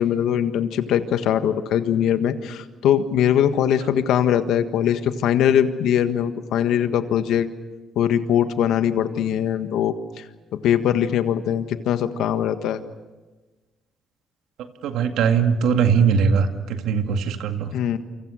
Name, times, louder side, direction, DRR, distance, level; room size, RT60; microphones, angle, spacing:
voice 1, 0.0-7.5 7.9-10.2 10.5-12.8 17.7-18.0, left 9 dB, 85° left, 9 dB, 1.6 m, -21 dB
voice 2, 14.8-17.7, right 6 dB, 85° right, 6 dB, 2.0 m, -20 dB
28.0 x 26.0 x 6.5 m, 1.2 s
cardioid pair, 90°, 0 cm